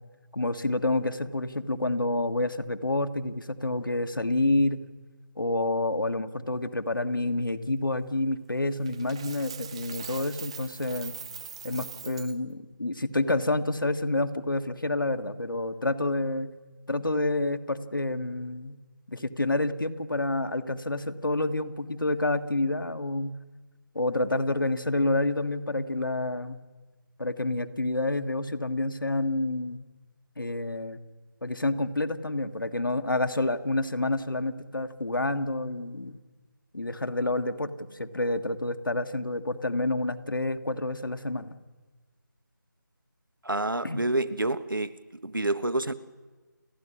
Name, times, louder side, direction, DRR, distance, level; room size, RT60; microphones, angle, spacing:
voice 1, 0.3-4.8 5.4-11.1 11.6-16.5 16.9-18.8 19.1-23.3 23.9-26.6 27.2-29.8 30.4-31.0 31.4-36.2 36.7-41.5 43.8-44.0, left 2 dB, 80° left, 8 dB, 1.6 m, -28 dB
Coin (dropping), 8.8-12.3, right 7 dB, 15° right, 0.7 m, -42 dB
voice 2, 43.4-44.9 45.2-45.9, right 2 dB, 85° right, 15 dB, 1.4 m, -28 dB
29.5 x 11.0 x 9.9 m, 1.3 s
figure-of-eight pair, 165°, 11 cm